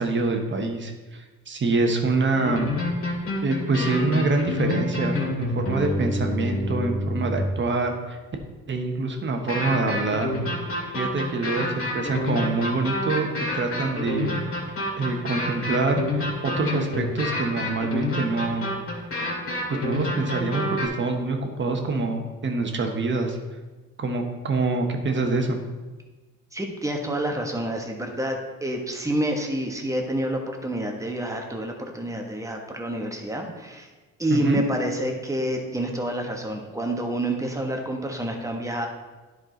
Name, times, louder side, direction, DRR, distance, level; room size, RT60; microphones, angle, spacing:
voice 1, 0.0-2.7 3.4-8.2 8.7-10.3 10.9-13.3 13.5-14.3 15.0-18.7 19.7-23.4 24.0-25.6 34.3-34.6, right 3 dB, 40° right, 4 dB, 1.2 m, -25 dB
sound 1, 2.3-7.6 9.5-20.9, left 1 dB, 45° left, 2.2 m, -28 dB
voice 2, 26.5-33.9 34.2-38.9, right 1 dB, 10° right, 2 dB, 1.3 m, -28 dB
10.5 x 4.8 x 3.9 m, 1.3 s
cardioid pair, 90°, 30 cm